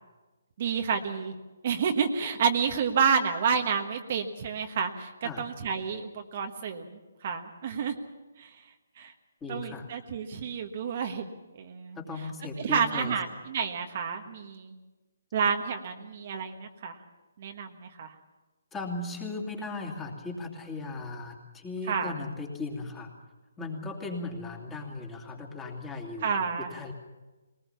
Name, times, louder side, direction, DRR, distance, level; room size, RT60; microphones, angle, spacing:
voice 1, 0.6-1.3 1.6-7.9 8.4-8.6 9.0-9.1 9.5-11.3 11.6-12.0 12.6-14.7 15.3-17.0 17.4-18.1 21.9-22.1 26.2-26.7, right 6 dB, 45° right, 5 dB, 1.4 m, -29 dB
voice 2, 9.4-9.9 12.0-13.2 18.7-23.1 23.6-26.3 26.6-26.9, left 3 dB, 10° left, 0 dB, 2.7 m, -37 dB
21.0 x 19.5 x 7.0 m, 1.2 s
hypercardioid pair, 155°, 0 cm